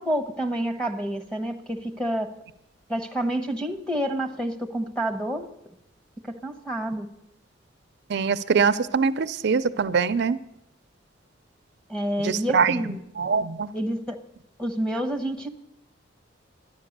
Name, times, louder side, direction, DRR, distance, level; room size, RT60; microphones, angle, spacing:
voice 1, 0.0-2.3 2.9-5.5 6.3-7.1 11.9-13.0 13.7-14.2 14.6-15.5, right 1 dB, 5° left, 2 dB, 1.1 m, -28 dB
voice 2, 8.1-10.4 12.2-12.8 13.2-13.7, right 5 dB, 65° right, 13 dB, 0.4 m, -23 dB
13.0 x 10.5 x 6.6 m, 0.80 s
head